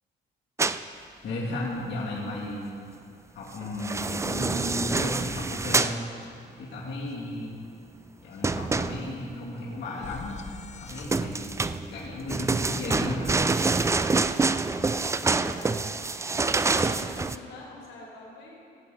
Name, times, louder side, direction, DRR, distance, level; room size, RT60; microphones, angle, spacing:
sound 1, 0.6-0.8 3.6-6.0 8.4-9.3 10.9-17.4, right 3 dB, 15° right, 0.3 m, -26 dB
voice 1, 1.2-2.7 3.3-6.0 6.6-7.6 8.2-10.4 10.8-11.6 11.9-13.4, left 2 dB, 65° left, -7 dB, 2.5 m, -34 dB
sound 2, 7.3-13.6, left 6 dB, 35° left, 0.6 m, -48 dB
voice 2, 15.2-15.8 16.7-18.6, left 3 dB, 90° left, -3 dB, 3.3 m, -45 dB
17.5 x 8.6 x 3.9 m, 2.4 s
cardioid pair, 90°, 20 cm